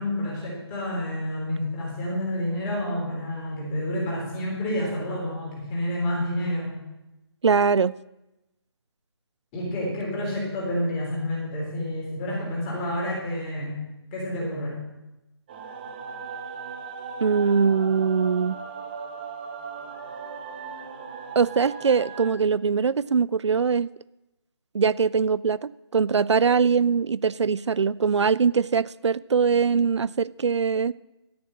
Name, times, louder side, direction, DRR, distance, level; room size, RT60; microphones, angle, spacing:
voice 1, 0.0-6.7 9.5-14.8, left 1 dB, 15° left, 3.7 m, -29 dB
voice 2, 7.4-7.9 17.2-18.6 21.4-23.9 24.7-30.9, right 5 dB, 85° right, 0.4 m, -22 dB
sound 1, 15.5-22.3, right 5 dB, 20° right, 0.8 m, -38 dB
12.5 x 7.0 x 7.5 m
figure-of-eight pair, 160°, 14 cm